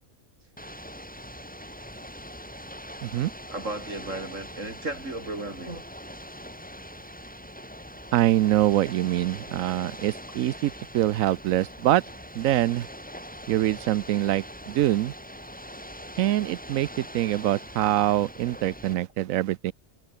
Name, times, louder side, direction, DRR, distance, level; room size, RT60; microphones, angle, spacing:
Ocean / Boat Water vehicle, 0.6-18.9, equal, 5° left, 6.3 m, -42 dB
voice 1, 3.5-5.8 18.9-19.1, right 2 dB, 65° right, 5.9 m, -35 dB
voice 2, 8.1-12.0 12.3-12.9 13.5-15.1 16.2-19.7, right 14 dB, 80° right, 1.0 m, -24 dB
omnidirectional pair, 1.4 m